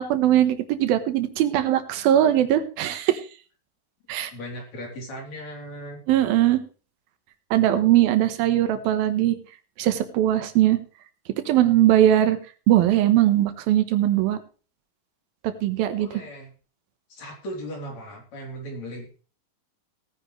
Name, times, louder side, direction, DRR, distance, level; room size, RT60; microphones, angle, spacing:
voice 1, 0.0-3.2 4.1-4.3 6.1-6.6 7.5-9.4 9.8-10.8 11.5-12.4 12.7-14.4 15.4-16.1, right 12 dB, 90° right, 11 dB, 3.0 m, -20 dB
voice 2, 4.3-6.0 8.7-8.8 16.0-16.5 17.1-19.1, equal, 50° left, 1 dB, 4.7 m, -37 dB
18.5 x 10.0 x 3.2 m, 0.37 s
omnidirectional pair, 4.1 m